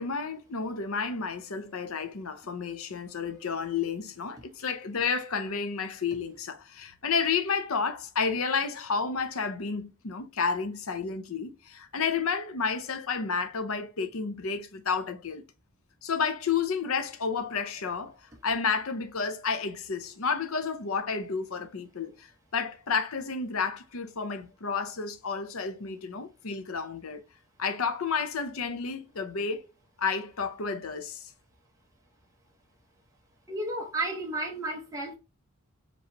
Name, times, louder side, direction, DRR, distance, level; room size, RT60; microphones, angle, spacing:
voice 1, 0.0-15.4 16.0-18.1 18.4-27.2 27.6-29.7 30.0-31.3, left 5 dB, 75° left, 0.7 m, -31 dB
voice 2, 33.5-35.2, right 2 dB, 15° right, 1.2 m, -32 dB
5.1 x 3.2 x 2.9 m
head